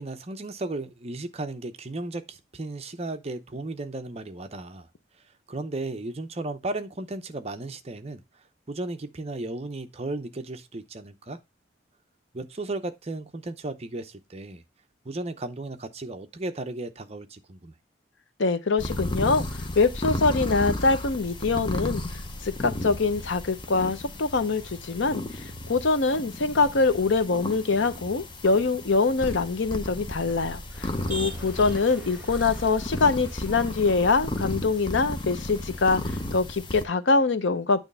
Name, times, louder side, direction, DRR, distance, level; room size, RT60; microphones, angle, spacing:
voice 1, 0.0-4.9 5.5-8.2 8.7-11.4 12.3-14.6 15.0-17.7, right 2 dB, 30° right, 0.6 m, -35 dB
voice 2, 18.4-19.5 19.8-22.0 22.4-37.8, left 3 dB, 65° left, 0.6 m, -24 dB
sound 1, 18.8-36.8, left 1 dB, 25° left, 0.6 m, -34 dB
Motor vehicle (road), 30.7-36.3, right 2 dB, 10° right, 1.3 m, -44 dB
9.0 x 3.1 x 5.4 m
head